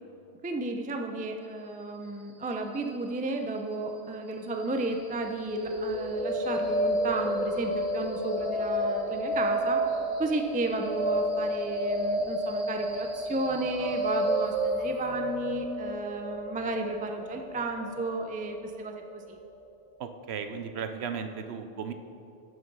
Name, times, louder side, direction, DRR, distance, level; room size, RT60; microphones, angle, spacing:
voice 1, 0.4-9.8 10.2-19.4, right 2 dB, 15° right, 3 dB, 0.3 m, -33 dB
sound 1, 5.5-19.4, equal, 30° right, 1.2 m, -30 dB
voice 2, 20.0-21.9, right 6 dB, 65° right, 8 dB, 0.8 m, -35 dB
11.0 x 6.5 x 5.3 m, 2.6 s
omnidirectional pair, 1.2 m